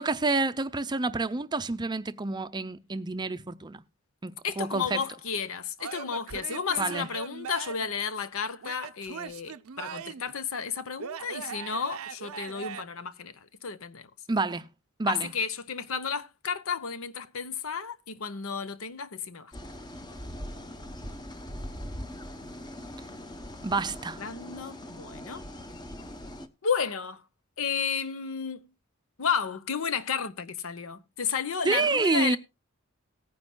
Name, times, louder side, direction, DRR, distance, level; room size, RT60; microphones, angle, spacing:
voice 1, 0.0-3.8 4.2-5.0 6.8-7.1 14.3-14.7 15.0-15.3 23.6-24.2 31.6-32.4, right 3 dB, 20° right, 0.5 m, -28 dB
voice 2, 4.4-14.1 15.1-19.5 24.2-25.4 26.6-27.2 27.6-28.7 29.2-32.4, left 6 dB, 70° left, 0.8 m, -32 dB
Male speech man speaking / Yell / Laughter, 5.8-7.9 8.6-10.3 11.0-12.8, right 7 dB, 85° right, 0.6 m, -40 dB
sound 1, 19.5-26.5, left 1 dB, 20° left, 0.8 m, -41 dB
18.5 x 9.6 x 2.2 m
head